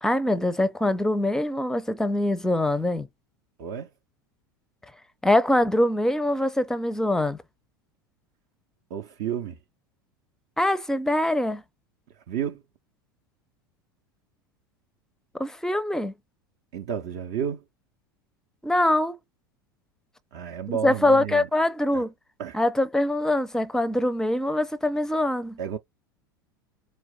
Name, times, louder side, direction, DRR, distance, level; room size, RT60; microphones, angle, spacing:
voice 1, 0.0-3.1 5.2-7.4 10.6-11.6 15.3-16.1 18.6-19.2 20.8-22.1 22.5-25.6, left 1 dB, 5° left, 0.5 m, -23 dB
voice 2, 3.6-3.9 8.9-9.6 12.3-12.6 16.7-17.6 20.3-21.5 21.9-22.0 22.4-22.6 25.6-25.8, right 8 dB, 50° right, 0.5 m, -31 dB
4.6 x 2.0 x 3.5 m
figure-of-eight pair, 80°, 12 cm